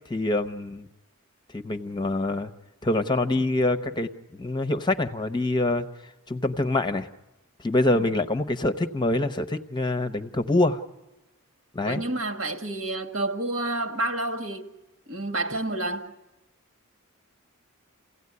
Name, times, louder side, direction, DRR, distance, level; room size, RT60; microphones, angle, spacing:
voice 1, 0.1-0.9 1.5-2.5 2.8-5.9 6.3-7.1 7.6-10.8 11.7-12.0, left 2 dB, 20° left, 0.8 m, -25 dB
voice 2, 11.8-14.7 15.1-16.1, right 2 dB, 65° right, 1.9 m, -29 dB
28.5 x 17.0 x 9.6 m
head